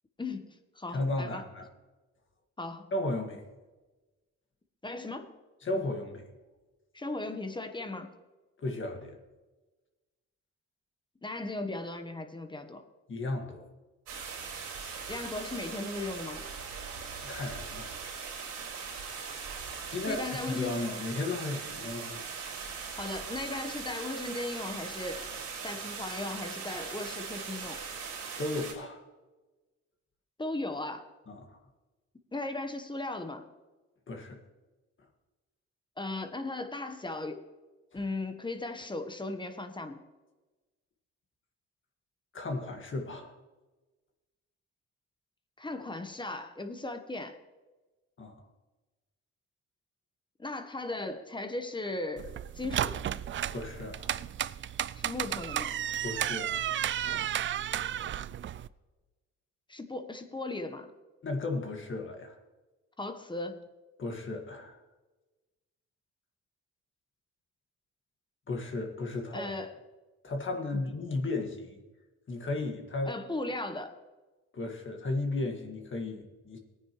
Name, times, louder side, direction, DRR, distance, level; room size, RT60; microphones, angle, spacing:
voice 1, 0.2-1.5 2.6-2.9 4.8-5.3 6.9-8.1 11.2-12.8 15.1-16.4 20.0-20.8 23.0-25.2 25.6-27.8 30.4-31.1 32.3-33.4 36.0-37.4 37.9-40.0 45.6-47.4 50.4-52.3 52.5-53.1 54.9-55.8 59.7-60.9 63.0-63.6 69.3-69.8 73.1-73.9, left 2 dB, 15° left, 7 dB, 1.1 m, -37 dB
voice 2, 0.9-1.7 2.9-3.4 5.6-6.2 8.6-9.2 13.1-13.7 17.2-17.9 19.9-20.2 20.5-22.2 28.4-29.0 31.3-31.6 34.1-34.4 42.3-43.3 48.2-48.4 53.5-54.2 56.0-56.7 61.2-62.4 64.0-64.8 68.5-69.5 70.2-71.8 72.3-73.2 74.5-76.6, left 2 dB, 40° left, 3 dB, 1.9 m, -34 dB
sound 1, 14.1-28.7, right 5 dB, 90° right, 4.5 m, -40 dB
sound 2, 52.2-58.7, right 11 dB, 40° right, 0.4 m, -33 dB
18.0 x 9.6 x 3.1 m, 1.2 s
cardioid pair, 90°, 30 cm